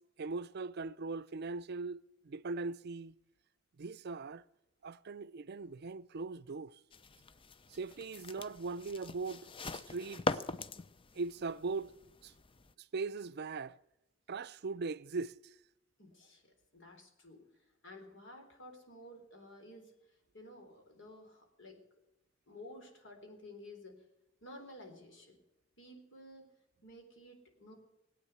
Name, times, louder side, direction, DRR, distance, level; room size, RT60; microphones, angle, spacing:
voice 1, 0.2-3.1 3.8-4.4 4.8-6.8 7.7-10.4 11.1-11.9 12.2-12.3 12.9-13.8 14.3-15.5, right 4 dB, 55° right, 0.5 m, -40 dB
sound 1, 6.9-12.7, left 3 dB, 25° left, 0.6 m, -42 dB
voice 2, 16.0-17.4 17.8-19.9 20.3-21.8 22.5-24.0 24.4-25.4 25.8-26.5 26.8-27.7, left 1 dB, 65° left, 4.0 m, -53 dB
19.0 x 9.0 x 8.1 m
head